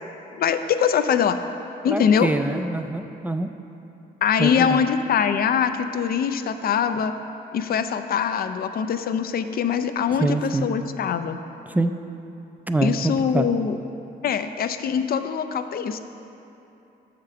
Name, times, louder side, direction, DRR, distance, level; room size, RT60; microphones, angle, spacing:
voice 1, 0.3-1.4 1.8-2.3 4.2-7.1 7.5-11.4 12.8-13.8 14.2-16.0, left 7 dB, 60° left, 9 dB, 0.4 m, -23 dB
voice 2, 1.9-3.5 4.4-4.8 10.2-10.7 11.7-12.0 12.7-13.5, right 2 dB, 10° right, 8 dB, 0.3 m, -25 dB
7.2 x 5.1 x 5.7 m, 2.9 s
cardioid pair, 95°, 18 cm